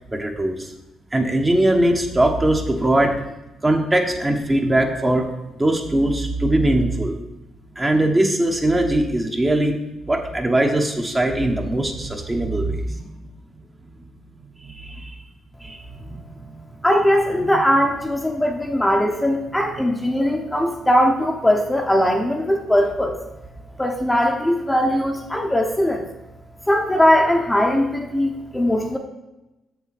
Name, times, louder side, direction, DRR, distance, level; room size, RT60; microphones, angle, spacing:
voice 1, 0.1-0.7 1.1-3.2 3.6-5.3 5.6-7.2 7.7-9.8 10.1-13.2 14.6-15.2 15.6-16.2 16.4-16.8 17.5-17.6, right 1 dB, 20° right, 2 dB, 1.2 m, -21 dB
voice 2, 16.8-23.2 23.8-26.0 26.7-29.0, equal, 10° left, 2 dB, 1.0 m, -20 dB
7.0 x 7.0 x 4.2 m, 0.98 s
cardioid pair, 90°, 0 cm